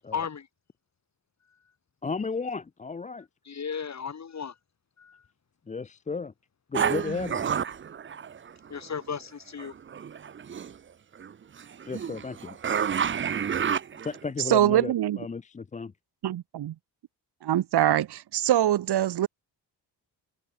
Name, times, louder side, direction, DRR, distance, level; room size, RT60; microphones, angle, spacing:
voice 1, 0.1-0.5 3.4-4.6 5.0-5.3 8.7-9.7, left 6 dB, 40° left, 6.6 m, -35 dB
voice 2, 2.0-3.3 5.7-6.3 6.7-7.5 11.8-12.6 14.0-15.9, left 4 dB, 20° left, 0.5 m, -34 dB
sound 1, 6.7-8.9 9.6-10.8 11.2-14.3, right 7 dB, 30° right, 0.6 m, -30 dB
voice 3, 14.5-15.2 16.2-16.7 17.4-19.3, right 12 dB, 70° right, 1.1 m, -23 dB
wide cardioid pair, 170°, 41 cm